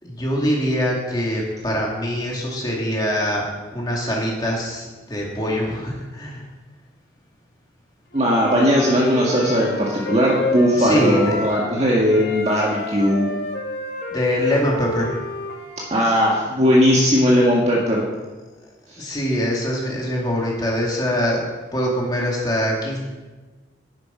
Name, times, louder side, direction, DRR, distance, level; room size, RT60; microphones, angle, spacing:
voice 1, 0.0-3.4 3.7-6.4 10.7-11.4 14.1-15.2 19.0-21.4 21.7-23.0, equal, 20° left, -2 dB, 2.4 m, -23 dB
Wind instrument woodwind instrument, 8.1-11.8 12.1-16.0, left 1 dB, 60° left, 1.9 m, -30 dB
voice 2, 8.1-13.3 15.9-18.0 19.0-19.1, equal, 35° right, -4 dB, 1.8 m, -18 dB
11.0 x 10.0 x 5.7 m, 1.3 s
head